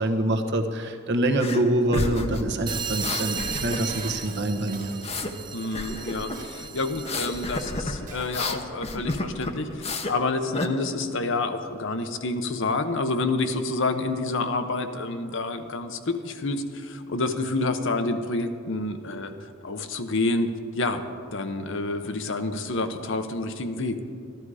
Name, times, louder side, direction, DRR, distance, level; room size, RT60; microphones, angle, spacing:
voice 1, 0.0-5.0, right 1 dB, 55° right, 5 dB, 1.1 m, -25 dB
sound 1, 1.4-1.6 1.9-4.1 4.4-5.3 5.7-6.4 6.9-10.2 10.5-10.7, left 2 dB, 30° left, 0.8 m, -30 dB
sound 2, 2.7-7.9, right 6 dB, 20° right, 0.5 m, -36 dB
Dishes pots and pans, 3.2-8.5 8.8-8.9, right 3 dB, 40° right, 1.5 m, -45 dB
voice 2, 5.5-19.3 19.6-21.0 21.3-24.0, left 3 dB, 65° left, 8 dB, 0.9 m, -28 dB
14.0 x 12.0 x 4.9 m, 2.3 s
head